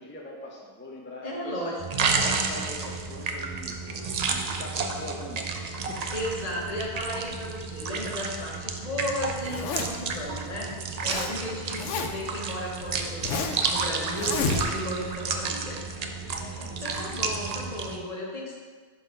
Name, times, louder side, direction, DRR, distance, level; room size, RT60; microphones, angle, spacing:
voice 1, 0.0-1.7 2.1-3.8 4.3-6.1 11.1-11.7 16.2-17.4, left 1 dB, 20° left, -2 dB, 0.3 m, -43 dB
voice 2, 1.2-2.1 3.9-4.0 6.1-10.7 11.0-13.3 13.7-18.6, equal, 35° left, -3 dB, 1.0 m, -35 dB
sound 1, 1.8-18.0, right 4 dB, 75° right, 0.3 m, -31 dB
Zipper (clothing), 9.4-10.1 10.7-11.3 11.6-12.3 12.8-13.7 14.1-15.0, left 4 dB, 80° left, 0.9 m, -30 dB
4.8 x 3.7 x 5.5 m, 1.5 s
omnidirectional pair, 1.2 m